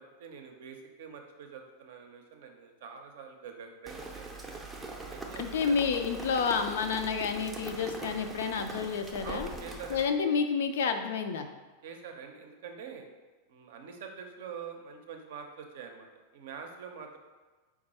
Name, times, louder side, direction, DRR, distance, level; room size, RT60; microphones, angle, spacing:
voice 1, 0.0-4.3 5.1-5.8 6.1-6.3 7.8-8.0 9.2-10.0 11.8-13.0 13.5-16.1 16.3-17.2, right 6 dB, 55° right, 4 dB, 0.5 m, -45 dB
Rain, 3.9-10.1, right 2 dB, 10° right, 0.5 m, -42 dB
voice 2, 5.3-9.5 9.9-11.5, left 5 dB, 60° left, 7 dB, 0.3 m, -29 dB
4.5 x 2.4 x 4.1 m, 1.3 s
figure-of-eight pair, 90°, 0 cm